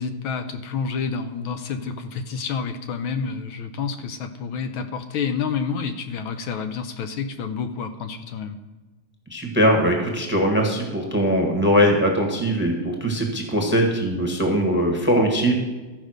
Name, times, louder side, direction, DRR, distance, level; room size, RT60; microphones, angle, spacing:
voice 1, 0.0-8.6, left 5 dB, 75° left, 8 dB, 1.4 m, -29 dB
voice 2, 9.3-15.5, equal, 5° right, 2 dB, 1.0 m, -21 dB
13.5 x 5.2 x 6.4 m, 1.2 s
omnidirectional pair, 2.4 m